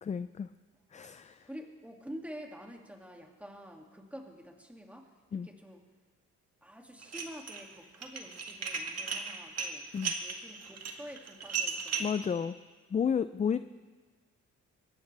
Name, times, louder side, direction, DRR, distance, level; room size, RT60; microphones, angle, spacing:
voice 1, 0.0-0.5 0.9-1.5 5.3-5.5 9.9-10.1 12.0-12.6 12.9-13.6, left 7 dB, 25° left, 13 dB, 0.4 m, -32 dB
voice 2, 1.4-5.8 6.6-9.9 10.2-12.5 13.5-13.6, equal, 5° right, 1 dB, 2.3 m, -48 dB
Dishes pots and pans, 7.0-7.6 7.9-12.2, right 5 dB, 55° right, 1.9 m, -36 dB
22.5 x 17.5 x 3.4 m, 1.4 s
cardioid pair, 90°, 30 cm